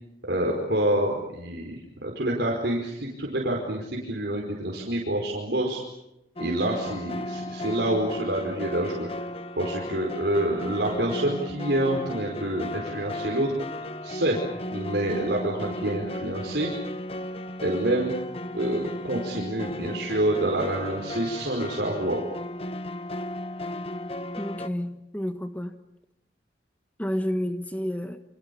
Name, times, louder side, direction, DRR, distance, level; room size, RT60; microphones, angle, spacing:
voice 1, 0.3-5.8 6.4-9.1 9.5-13.5 14.0-14.4 14.7-16.7 17.6-18.1 18.5-22.2, right 1 dB, 65° right, -1 dB, 5.0 m, -27 dB
sound 1, 6.4-24.7, left 1 dB, 35° left, 1.1 m, -35 dB
voice 2, 24.4-25.8 27.0-28.2, equal, 10° left, 8 dB, 1.3 m, -30 dB
29.0 x 26.5 x 7.1 m, 0.87 s
head